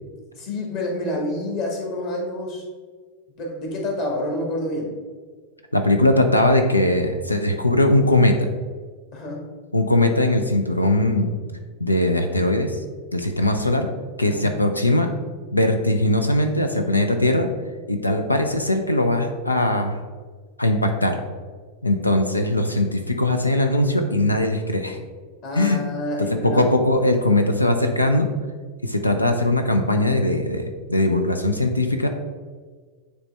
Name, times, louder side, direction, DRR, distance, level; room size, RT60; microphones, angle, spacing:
voice 1, 0.3-2.6 3.4-4.9 9.1-9.5 14.3-14.5 25.4-26.7, left 1 dB, 45° left, 1 dB, 1.6 m, -28 dB
voice 2, 5.7-8.5 9.7-11.3 11.8-12.8 13.1-13.9 14.2-15.1 15.5-17.5 17.9-20.0 20.6-21.2 21.8-25.0 25.5-25.8 26.3-28.3 28.8-32.1, left 1 dB, 85° left, 6 dB, 0.5 m, -20 dB
9.5 x 3.2 x 3.3 m, 1.5 s
figure-of-eight pair, 90°, 0 cm